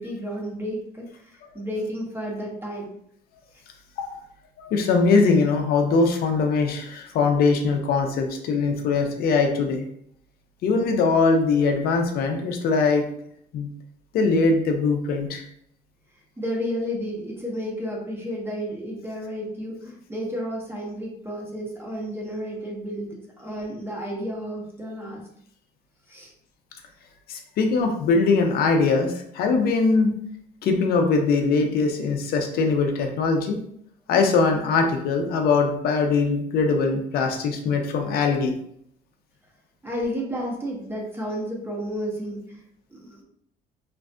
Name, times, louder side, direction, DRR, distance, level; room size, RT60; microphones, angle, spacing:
voice 1, 0.0-2.9 16.4-25.2 26.1-26.3 39.8-42.6 42.9-43.2, equal, 15° right, -2 dB, 0.6 m, -32 dB
voice 2, 4.6-9.8 10.6-13.0 13.5-13.7 14.1-15.4 27.3-30.1 30.6-33.6 34.1-38.5, left 4 dB, 65° left, 4 dB, 0.5 m, -21 dB
2.5 x 2.4 x 2.2 m, 0.69 s
cardioid pair, 110°, 17 cm